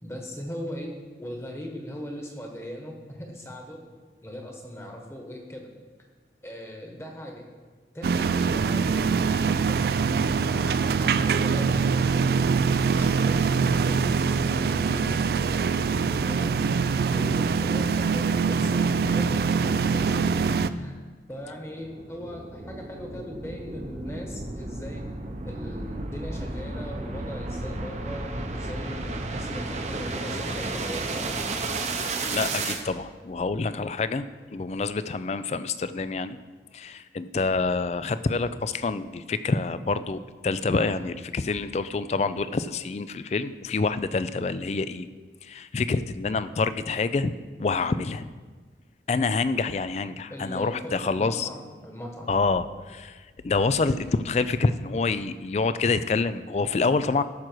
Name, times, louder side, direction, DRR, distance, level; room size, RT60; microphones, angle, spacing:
voice 1, 0.0-0.9 1.2-3.8 4.2-5.7 6.4-7.4 7.9-12.5 12.9-15.1 15.6-16.5 17.1-20.3 20.7-25.0 25.4-31.4 50.3-52.6, equal, 15° left, 1 dB, 1.3 m, -39 dB
sound 1, 8.0-20.7, right 5 dB, 60° right, 0.3 m, -23 dB
sound 2, 21.3-32.8, right 2 dB, 40° right, 0.8 m, -33 dB
voice 2, 32.2-34.3 34.5-36.4 36.7-45.1 45.4-47.3 47.6-48.3 49.1-51.5 52.3-57.2, left 4 dB, 40° left, 13 dB, 0.4 m, -27 dB
13.5 x 6.2 x 4.6 m, 1.4 s
head